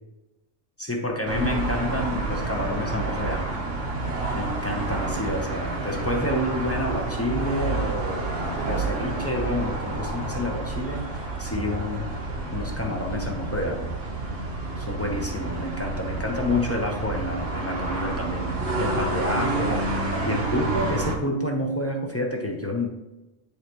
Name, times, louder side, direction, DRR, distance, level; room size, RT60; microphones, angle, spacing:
voice 1, 0.8-3.5 4.3-8.3 8.7-12.1 12.5-13.9 14.8-18.5 18.8-22.9, left 1 dB, 15° left, 0 dB, 0.8 m, -29 dB
sound 1, 1.3-21.2, right 3 dB, 70° right, 1.6 m, -29 dB
10.0 x 4.0 x 3.0 m, 1.0 s
omnidirectional pair, 1.3 m